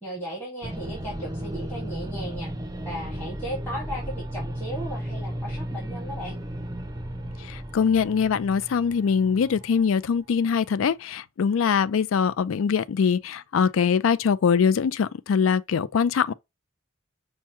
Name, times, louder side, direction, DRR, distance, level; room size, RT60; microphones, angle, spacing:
voice 1, 0.0-2.5 2.8-6.4, equal, 10° left, 1.6 m, -36 dB
sound 1, 0.6-10.1, right 1 dB, 20° right, 0.5 m, -34 dB
voice 2, 7.5-16.3, left 6 dB, 85° left, 0.4 m, -23 dB
5.6 x 2.2 x 2.8 m
head